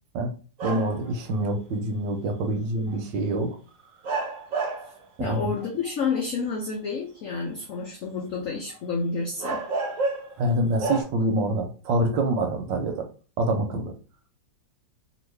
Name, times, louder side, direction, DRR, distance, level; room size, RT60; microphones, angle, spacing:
sound 1, 0.6-1.1 2.9-3.0 4.0-5.0 5.6-6.2 8.7-8.8 9.4-10.4 10.8-11.0, right 3 dB, 55° right, 0.9 m, -29 dB
voice 1, 0.6-3.6 5.2-5.5 10.4-13.1 13.4-13.9, right 1 dB, 75° right, 5 dB, 1.3 m, -26 dB
voice 2, 5.2-9.6, left 4 dB, 80° left, 1 dB, 0.7 m, -29 dB
3.0 x 2.5 x 3.2 m, 0.38 s
omnidirectional pair, 2.0 m